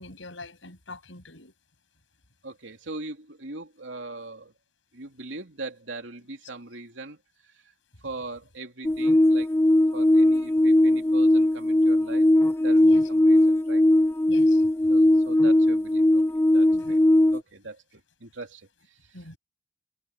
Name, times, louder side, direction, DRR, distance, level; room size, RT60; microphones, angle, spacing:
voice 1, 0.0-1.5 12.8-13.1 14.3-14.6 16.7-17.0 19.1-19.4, left 2 dB, 75° left, 7.4 m, -43 dB
voice 2, 2.4-4.5 4.9-7.2 8.0-9.5 9.9-12.3 12.6-13.8 14.9-17.0 17.3-19.3, right 2 dB, 75° right, 3.1 m, -40 dB
sound 1, 8.8-17.4, left 1 dB, 10° left, 0.3 m, -19 dB
head